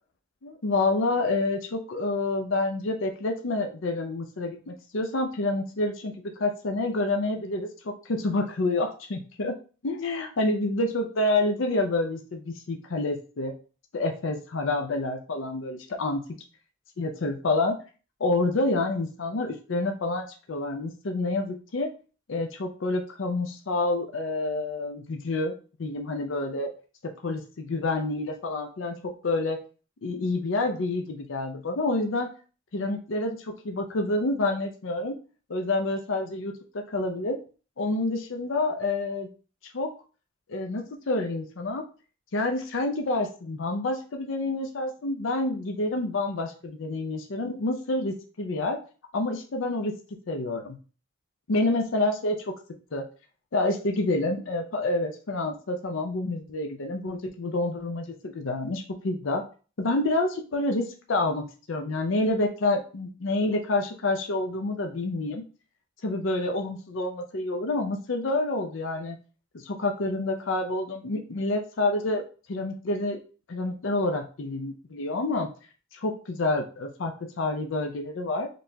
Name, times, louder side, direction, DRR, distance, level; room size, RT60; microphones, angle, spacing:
voice 1, 0.4-6.1 6.4-9.5 9.8-13.5 13.9-16.2 17.0-17.8 18.2-21.9 22.3-25.5 25.8-26.7 27.2-29.6 30.0-32.3 32.7-35.2 35.5-37.4 37.8-39.3 39.7-39.9 40.5-41.8 42.3-48.8 49.1-49.9 50.3-50.8 51.5-52.5 52.9-53.0 53.5-59.4 59.8-65.4 66.0-69.2 69.6-72.2 72.5-73.2 73.5-75.5 75.9-78.5, left 2 dB, 75° left, 4 dB, 0.6 m, -28 dB
4.2 x 3.2 x 2.7 m, 0.36 s
head